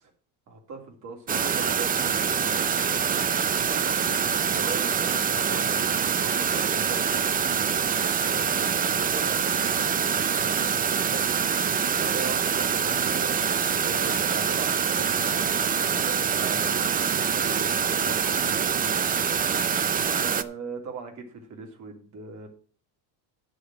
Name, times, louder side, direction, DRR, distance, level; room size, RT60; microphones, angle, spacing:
voice 1, 0.5-3.3 3.6-7.1 8.2-11.2 12.0-19.2 20.1-22.5, right 4 dB, 40° right, 2 dB, 3.1 m, -40 dB
sound 1, 1.3-20.4, right 7 dB, 20° right, 0.4 m, -25 dB
10.5 x 5.1 x 7.6 m, 0.41 s
cardioid pair, 135°, 44 cm